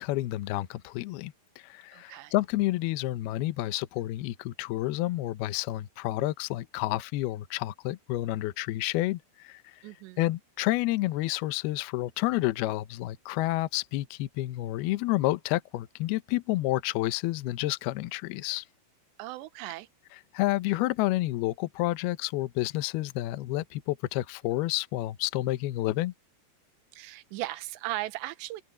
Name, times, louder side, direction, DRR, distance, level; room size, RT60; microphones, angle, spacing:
voice 1, 0.0-9.8 10.2-18.6 20.3-26.1, left 17 dB, 75° left, 2.5 m, -30 dB
voice 2, 1.9-2.3 9.8-10.2 19.2-19.9 26.9-28.6, right 17 dB, 80° right, 3.1 m, -37 dB
open air
omnidirectional pair, 5.2 m